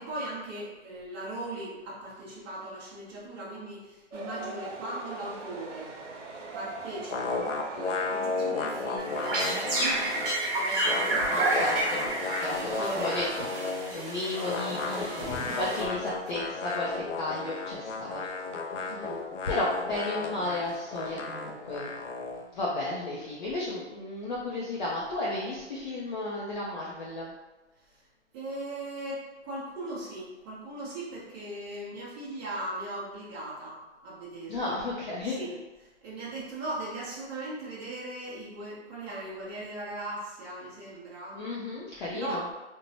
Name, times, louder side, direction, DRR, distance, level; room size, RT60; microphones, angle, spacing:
voice 1, 0.0-6.0 6.5-10.1 10.5-12.0 12.5-13.6 18.9-19.3 23.8-23.9 27.9-28.0 28.3-34.8 35.2-35.5 35.8-41.4 42.1-42.4, right 1 dB, 20° right, -10 dB, 0.6 m, -39 dB
sound 1, 4.1-22.4, right 3 dB, 85° right, 0.7 m, -44 dB
sound 2, 7.1-10.4 10.6-14.0 14.4-22.5, left 4 dB, 90° left, 0.5 m, -34 dB
sound 3, 9.0-16.3, right 2 dB, 50° right, 0.9 m, -31 dB
voice 2, 11.3-12.0 12.4-13.2 13.6-18.2 18.8-18.9 19.5-21.9 22.5-27.3 34.5-35.4 41.3-42.4, left 2 dB, 40° left, -6 dB, 0.5 m, -33 dB
3.0 x 2.1 x 2.7 m, 1.1 s
hypercardioid pair, 150°, 36 cm